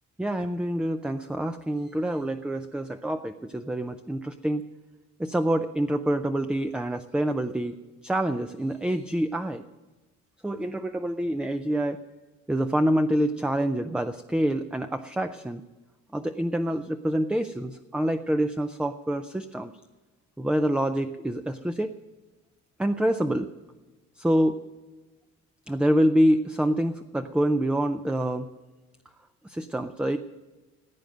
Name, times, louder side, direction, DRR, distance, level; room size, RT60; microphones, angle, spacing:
voice 1, 0.2-4.6 5.2-7.7 8.0-9.6 10.4-12.0 12.5-15.6 16.1-19.7 20.4-21.9 22.8-23.5 24.2-24.6 25.7-28.5 29.4-30.2, right 1 dB, 5° right, 8 dB, 0.4 m, -26 dB
16.0 x 9.1 x 6.5 m, 1.2 s
cardioid pair, 150°, 30 cm